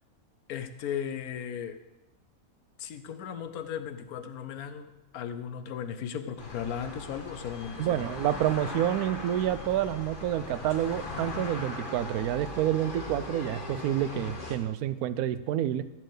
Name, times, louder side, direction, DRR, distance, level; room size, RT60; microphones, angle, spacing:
voice 1, 0.5-1.8 2.8-8.6, left 8 dB, 80° left, 10 dB, 1.3 m, -37 dB
sound 1, 6.4-14.6, left 2 dB, 35° left, 1.5 m, -39 dB
voice 2, 7.8-15.8, right 11 dB, 80° right, 14 dB, 1.1 m, -28 dB
14.0 x 4.6 x 7.9 m, 1.0 s
omnidirectional pair, 1.6 m